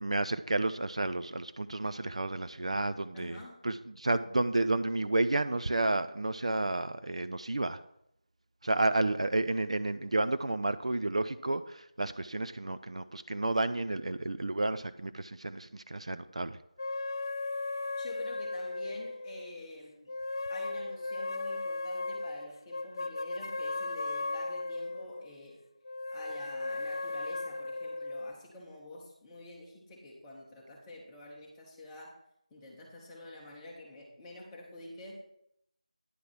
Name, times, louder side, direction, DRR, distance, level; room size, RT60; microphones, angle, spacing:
voice 1, 0.0-7.8 8.6-16.6, right 2 dB, 55° right, 11 dB, 0.5 m, -31 dB
voice 2, 3.1-3.6 18.0-20.1 20.5-25.6 26.1-32.1 32.5-35.2, left 1 dB, 10° left, -4 dB, 1.2 m, -48 dB
sound 1, 16.8-19.5 20.1-25.3 25.8-28.3, left 2 dB, 35° left, 0.4 m, -36 dB
10.0 x 4.7 x 6.0 m, 0.77 s
figure-of-eight pair, 170°, 4 cm